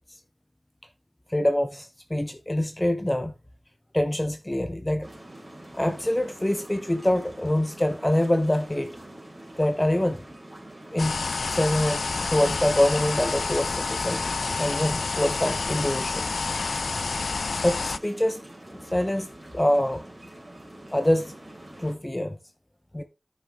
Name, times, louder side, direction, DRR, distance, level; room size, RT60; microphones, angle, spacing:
voice 1, 1.3-3.3 3.9-5.1 5.7-9.0 9.6-10.2 10.9-11.2 11.5-16.3 17.5-18.4 18.7-20.0 20.9-21.3 21.8-22.4 22.9-23.0, left 1 dB, 15° left, 0.9 m, -25 dB
sound 1, 5.0-22.0, right 1 dB, 30° right, 3.6 m, -45 dB
sound 2, 11.0-18.0, left 4 dB, 85° left, 0.4 m, -29 dB
10.5 x 6.5 x 3.5 m
wide cardioid pair, 70°, 0 cm